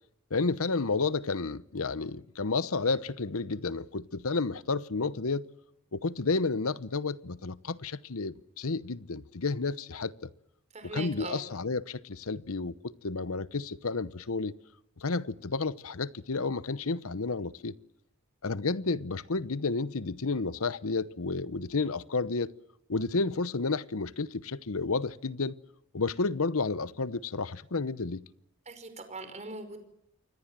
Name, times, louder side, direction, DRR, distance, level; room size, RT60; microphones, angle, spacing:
voice 1, 0.3-5.5 5.9-10.3 10.8-14.5 15.0-17.8 18.4-22.5 22.9-25.6 25.9-28.2, left 3 dB, 75° left, 1.0 m, -31 dB
voice 2, 10.7-11.5 28.7-29.8, right 3 dB, 35° right, 5.4 m, -41 dB
28.5 x 24.0 x 7.6 m
head